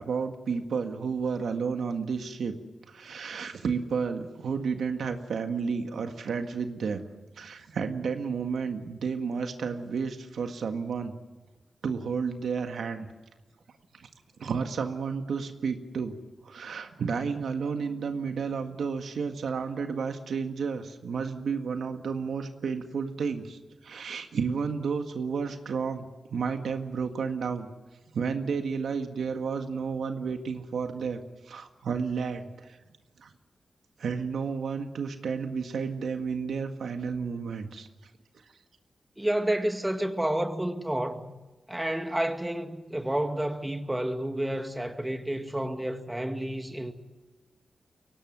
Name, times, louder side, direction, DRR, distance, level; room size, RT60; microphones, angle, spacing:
voice 1, 0.0-2.6 2.9-7.0 7.4-11.2 11.8-13.1 13.9-14.1 14.4-16.2 16.4-27.7 28.1-31.2 31.5-32.8 33.2-33.3 34.0-37.9, right 5 dB, 85° right, 1.8 m, -31 dB
voice 2, 39.2-41.3 41.7-46.9, right 1 dB, 10° right, 2.1 m, -30 dB
23.5 x 18.0 x 9.4 m
cardioid pair, 80°, 0 cm